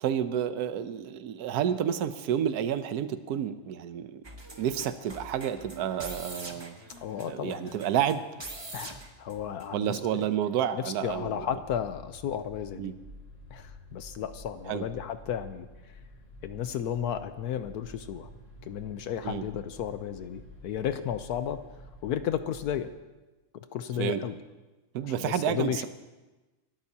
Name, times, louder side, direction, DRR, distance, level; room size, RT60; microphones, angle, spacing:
voice 1, 0.0-4.2 4.6-6.7 7.3-8.2 9.7-11.5 12.8-12.9 14.7-14.8 19.2-19.4 24.0-24.2 24.9-25.9, right 9 dB, 75° right, 11 dB, 1.2 m, -30 dB
sound 1, 4.2-9.9 10.2-10.3, right 2 dB, 20° right, 1.0 m, -44 dB
voice 2, 7.0-7.8 8.7-9.0 9.2-10.3 10.7-12.9 13.5-15.7 16.4-18.3 18.6-21.6 22.0-22.9 23.5-24.4 25.0-25.9, left 9 dB, 75° left, 10 dB, 1.2 m, -33 dB
sound 2, 11.0-22.9, left 1 dB, 30° left, 3.6 m, -50 dB
27.5 x 13.0 x 2.8 m, 1.1 s
omnidirectional pair, 1.7 m